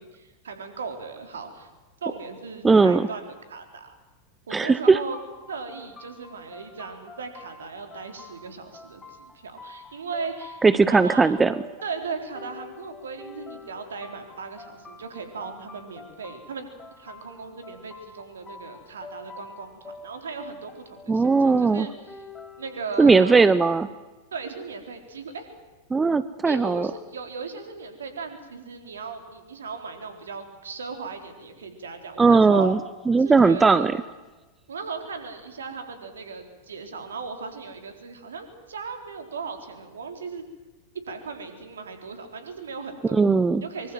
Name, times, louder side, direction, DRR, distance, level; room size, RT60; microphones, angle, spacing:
voice 1, 0.0-1.7 2.0-4.0 4.5-5.2 5.5-10.6 10.9-11.3 11.8-16.7 17.0-22.3 22.6-23.5 24.3-25.5 26.4-32.7 33.2-33.9 34.7-40.4 40.9-43.3 43.6-43.9, right 4 dB, 65° right, 6 dB, 3.9 m, -37 dB
voice 2, 2.6-3.1 4.5-5.0 10.6-11.5 21.1-21.9 23.0-23.9 25.9-26.9 32.2-32.8 33.1-33.9 43.1-43.6, right 4 dB, 15° right, 15 dB, 0.8 m, -18 dB
sound 1, 5.1-22.9, left 3 dB, 15° left, 3.7 m, -46 dB
24.5 x 24.5 x 7.7 m, 1.2 s
figure-of-eight pair, 90°, 0 cm